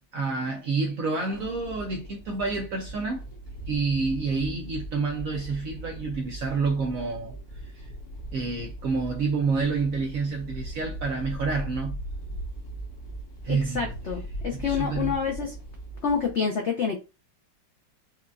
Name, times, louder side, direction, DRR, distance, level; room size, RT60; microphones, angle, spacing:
voice 1, 0.1-3.2 3.7-7.9 8.3-12.0 13.4-13.9 14.5-15.2, right 4 dB, 70° right, 0.8 m, -28 dB
sound 1, 1.3-16.3, right 1 dB, 55° left, 1.4 m, -39 dB
voice 2, 13.5-15.6 16.0-17.0, left 6 dB, 85° left, 0.6 m, -28 dB
4.9 x 2.5 x 2.2 m
omnidirectional pair, 2.1 m